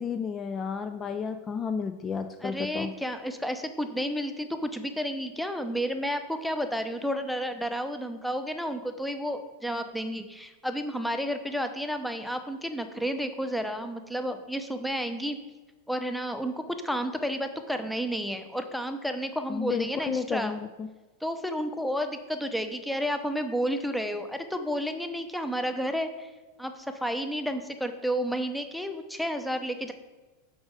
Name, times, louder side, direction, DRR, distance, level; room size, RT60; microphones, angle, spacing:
voice 1, 0.0-2.9 19.5-20.9, left 6 dB, 25° left, 9 dB, 0.4 m, -32 dB
voice 2, 2.4-15.4 15.9-20.6 21.2-26.3 26.6-29.9, equal, ahead, 7 dB, 0.8 m, -31 dB
6.1 x 5.1 x 6.4 m, 1.2 s
hypercardioid pair, 100°, 0 cm